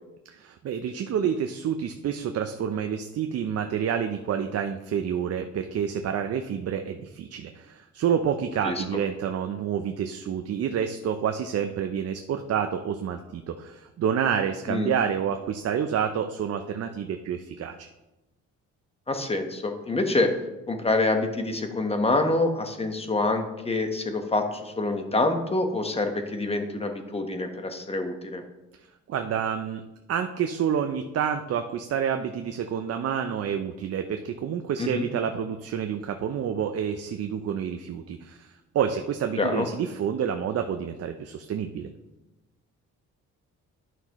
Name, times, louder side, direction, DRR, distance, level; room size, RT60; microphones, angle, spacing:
voice 1, 0.3-17.9 29.1-29.8 30.1-41.9, right 8 dB, 55° right, 6 dB, 0.6 m, -28 dB
voice 2, 19.1-20.3 20.7-28.4 34.8-35.1 39.4-39.7, left 2 dB, 20° left, 5 dB, 1.1 m, -26 dB
11.0 x 5.8 x 3.1 m, 1.0 s
cardioid pair, 90°, 30 cm